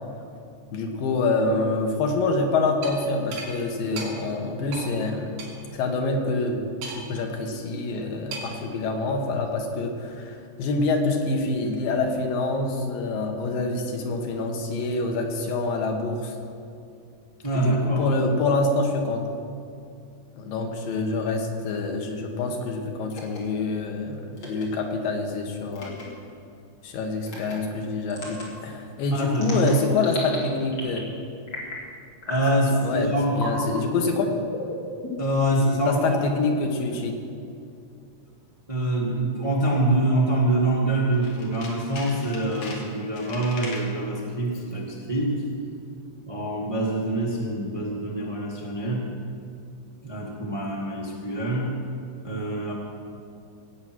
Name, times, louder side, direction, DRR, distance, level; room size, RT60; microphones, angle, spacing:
voice 1, 0.7-5.4 5.7-6.6 6.9-16.3 17.6-19.2 20.4-25.9 26.8-31.0 32.8-34.3 35.9-37.1, left 3 dB, 80° left, 2 dB, 3.1 m, -26 dB
sound 1, 2.8-3.0 3.3-3.5 4.0-4.1 4.7-4.9 5.4-5.5 6.8-7.2 8.3-8.6, right 3 dB, 85° right, 4.7 m, -35 dB
voice 2, 17.4-18.1 29.1-29.7 32.3-33.7 35.2-36.2 38.7-45.4 46.2-49.1 50.0-51.7 52.2-52.7, right 1 dB, 15° right, -4 dB, 1.0 m, -25 dB
sound 2, 23.1-23.4 24.4-24.7 25.7-26.0 27.2-27.6 28.1-28.5 29.3-30.4 30.7-31.1 31.5-31.9 32.2-32.6 33.3-33.7 34.5-35.4, left 2 dB, 35° left, 3.0 m, -35 dB
Tools, 41.1-44.0 44.5-44.8 45.0-45.1, left 3 dB, 60° left, 3.0 m, -40 dB
17.0 x 8.7 x 6.2 m, 2.5 s
omnidirectional pair, 4.0 m